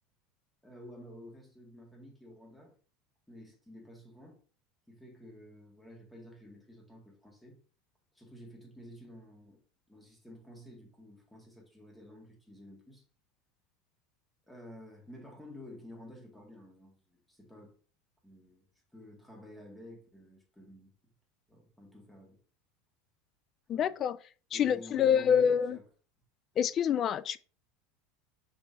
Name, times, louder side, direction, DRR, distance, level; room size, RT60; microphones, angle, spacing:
voice 1, 0.6-2.8 3.3-4.4 4.9-7.6 8.1-9.6 9.9-13.0 14.5-17.8 18.2-18.6 18.9-20.9 21.5-22.4 23.7-24.0 24.5-25.8 26.5-26.7, left 1 dB, 5° left, 1.9 m, -51 dB
voice 2, 23.7-24.2 24.5-25.8 26.6-27.4, left 8 dB, 35° left, 0.4 m, -26 dB
6.6 x 5.5 x 2.6 m
supercardioid pair, 140°, 0 cm